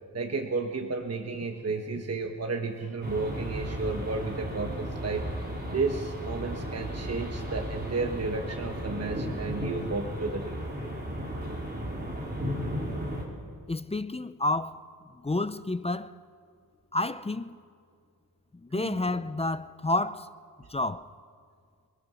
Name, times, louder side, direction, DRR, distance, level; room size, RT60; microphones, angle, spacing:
voice 1, 0.1-5.3 5.7-10.6 18.7-19.0, right 3 dB, 40° right, 1.3 m, -32 dB
sound 1, 3.0-13.2, equal, 25° right, 3.9 m, -34 dB
voice 2, 13.7-14.8 15.1-16.2 16.9-17.6 18.6-20.3 20.7-21.1, left 2 dB, 15° left, 0.5 m, -30 dB
27.5 x 20.5 x 6.2 m
wide cardioid pair, 145°, 37 cm